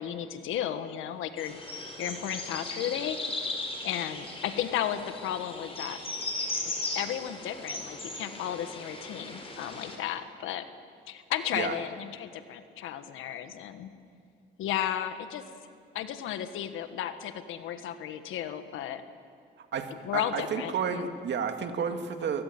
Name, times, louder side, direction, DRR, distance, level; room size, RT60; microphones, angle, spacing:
voice 1, 0.0-1.6 2.0-3.2 3.8-6.0 6.9-10.6 11.1-13.9 14.6-15.4 15.9-19.0 20.0-21.1, left 10 dB, 90° left, 10 dB, 1.5 m, -34 dB
sound 1, 1.4-10.0, left 2 dB, 30° left, 5.1 m, -37 dB
voice 2, 19.6-22.4, right 6 dB, 65° right, 6 dB, 2.1 m, -32 dB
23.0 x 16.5 x 9.5 m, 2.3 s
cardioid pair, 90°, 20 cm